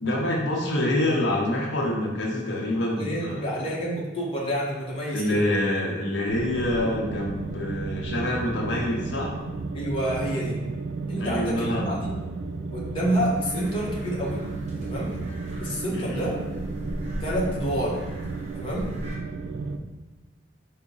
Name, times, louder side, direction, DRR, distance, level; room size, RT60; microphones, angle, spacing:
voice 1, 0.0-3.5 5.1-9.3 11.2-11.9 15.9-16.4, left 1 dB, 70° left, -3 dB, 0.8 m, -26 dB
voice 2, 3.0-5.4 9.7-10.6 11.1-12.0 12.7-14.4 14.8-15.2 15.6-16.4 17.2-18.0 18.5-18.9, equal, 30° left, -5 dB, 0.8 m, -28 dB
sound 1, 6.3-19.8, right 3 dB, 80° right, 0.3 m, -33 dB
sound 2, 13.3-19.2, equal, 40° right, 0.9 m, -39 dB
4.6 x 2.1 x 3.9 m, 1.2 s
head